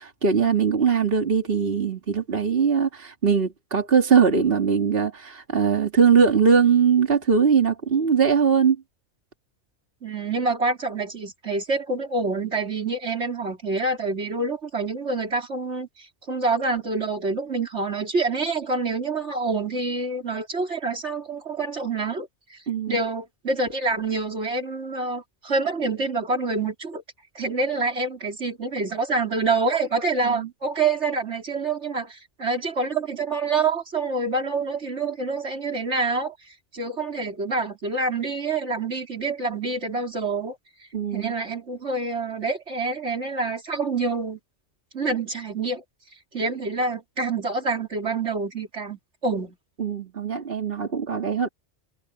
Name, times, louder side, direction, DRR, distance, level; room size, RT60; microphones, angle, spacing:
voice 1, 0.0-8.8 22.7-23.0 30.2-30.5 40.9-41.3 49.8-51.5, right 6 dB, 55° right, 2.4 m, -21 dB
voice 2, 10.0-22.6 22.9-27.0 27.4-36.3 36.7-40.6 41.1-44.4 44.9-45.8 46.3-49.6, right 3 dB, 75° right, 3.9 m, -27 dB
omnidirectional pair, 1.2 m